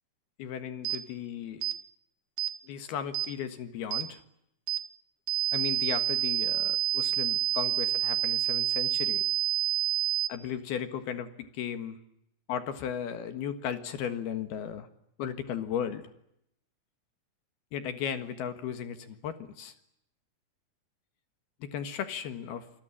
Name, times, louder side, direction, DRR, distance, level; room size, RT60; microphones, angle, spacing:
voice 1, 0.4-1.6 2.6-4.2 5.5-9.2 10.3-12.0 12.5-14.9 15.2-16.1 17.7-19.7 21.6-22.7, left 8 dB, 60° left, 10 dB, 3.0 m, -36 dB
sound 1, 0.8-1.0 1.6-1.8 2.4-2.5 3.1-3.3 3.9-4.1 4.7-4.8 5.3-10.3, right 13 dB, 70° right, 2.3 m, -28 dB
27.5 x 20.5 x 9.9 m, 0.78 s
omnidirectional pair, 5.8 m